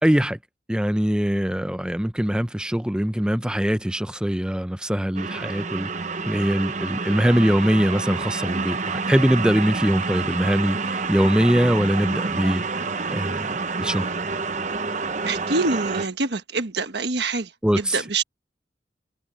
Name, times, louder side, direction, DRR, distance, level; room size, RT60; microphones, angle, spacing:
voice 1, 0.0-0.4 0.7-5.9 6.3-12.6 13.1-13.5 13.8-14.1 17.6-18.0, equal, 5° right, 0.6 m, -22 dB
sound 1, 5.2-16.1, right 4 dB, 40° right, 0.8 m, -28 dB
voice 2, 15.2-18.2, right 3 dB, 75° right, 1.3 m, -26 dB
head